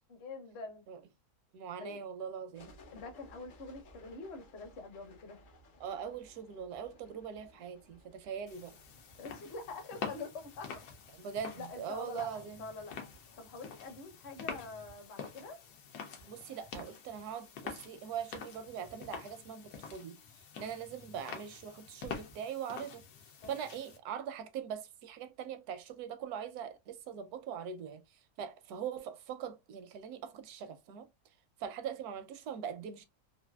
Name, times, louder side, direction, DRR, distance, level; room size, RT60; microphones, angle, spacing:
voice 1, 0.1-0.9 1.8-2.0 2.9-5.4 9.2-10.8 11.6-13.1 13.4-15.6 23.4-23.6, left 3 dB, 50° left, 0.9 m, -45 dB
voice 2, 1.5-2.7 5.8-8.8 11.2-12.6 16.3-20.2 20.6-23.0 23.5-31.1 31.6-33.0, right 8 dB, 80° right, 1.1 m, -42 dB
sound 1, 2.5-19.1, left 1 dB, 70° left, 0.4 m, -62 dB
sound 2, 8.5-24.0, left 6 dB, 90° left, 1.2 m, -47 dB
3.3 x 2.5 x 2.2 m
omnidirectional pair, 1.6 m